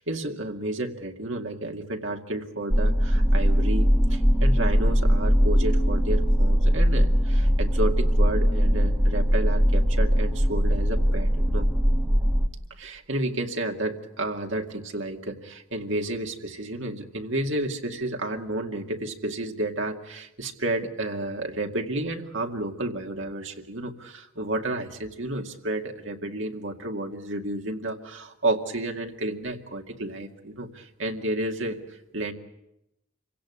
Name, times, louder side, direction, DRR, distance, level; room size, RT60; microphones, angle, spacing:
voice 1, 0.0-11.7 12.7-32.3, right 1 dB, 65° right, 3 dB, 2.2 m, -31 dB
sound 1, 2.7-12.5, equal, 5° right, 1.6 m, -21 dB
26.0 x 17.0 x 9.9 m, 0.84 s
head